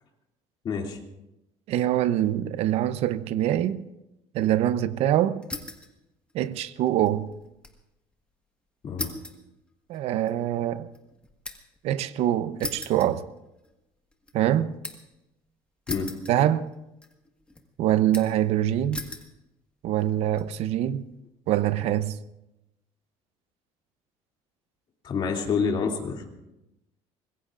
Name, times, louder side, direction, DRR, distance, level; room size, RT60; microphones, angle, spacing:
voice 1, 0.6-1.0 8.8-9.1 15.9-16.1 25.0-26.3, left 5 dB, 45° left, 2.7 m, -28 dB
voice 2, 1.7-3.8 4.3-5.4 6.3-7.3 9.9-10.9 11.8-13.3 14.3-14.7 16.3-16.7 17.8-19.0 19.8-21.1 21.5-22.2, right 12 dB, 70° right, 0.8 m, -24 dB
sound 1, 5.4-5.9 6.3-7.8 8.1-8.2 9.0-11.8 12.6-13.7 14.1-15.1 15.9-16.8 17.0-17.6 18.1-18.5 18.9-19.3 20.0-20.4, left 2 dB, 10° left, 1.6 m, -39 dB
24.5 x 21.0 x 2.5 m
cardioid pair, 140°, 11 cm